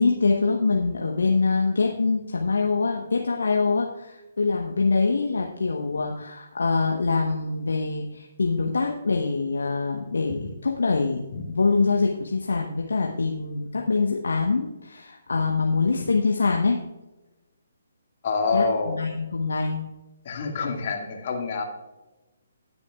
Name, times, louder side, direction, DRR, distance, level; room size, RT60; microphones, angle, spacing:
voice 1, 0.0-11.2 11.5-16.8 18.5-19.9, left 4 dB, 65° left, 1 dB, 1.1 m, -24 dB
voice 2, 18.2-19.0 20.3-21.6, left 4 dB, 45° left, 2 dB, 1.9 m, -26 dB
19.5 x 6.9 x 2.4 m, 1.1 s
figure-of-eight pair, 135°, 0 cm